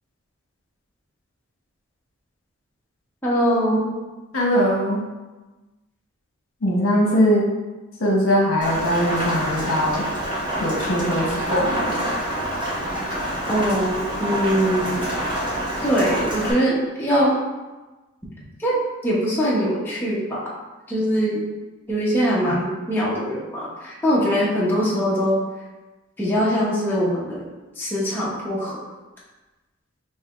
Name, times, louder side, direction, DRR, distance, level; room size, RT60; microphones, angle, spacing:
voice 1, 3.2-3.9 13.5-15.1 15.8-17.4 18.6-20.4 20.9-21.4 21.9-25.4 26.2-27.4 27.8-28.8, equal, 10° left, -7 dB, 0.7 m, -22 dB
voice 2, 4.3-5.0 6.6-7.5 8.0-10.0 10.6-12.1, equal, 70° left, -2 dB, 0.9 m, -21 dB
Rain, 8.6-16.5, right 1 dB, 20° right, 0.8 m, -27 dB
5.4 x 2.8 x 2.4 m, 1.2 s
head